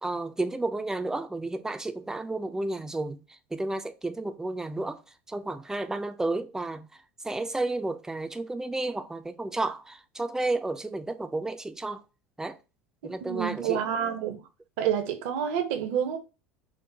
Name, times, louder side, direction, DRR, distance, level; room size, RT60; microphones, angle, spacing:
voice 1, 0.0-3.2 3.5-5.0 5.3-6.9 7.2-12.0 12.4-12.6 13.0-13.8, right 2 dB, 5° right, 0.4 m, -31 dB
voice 2, 13.2-14.4 14.8-16.2, right 9 dB, 60° right, 0.6 m, -28 dB
4.5 x 2.1 x 2.6 m
figure-of-eight pair, 75°, 8 cm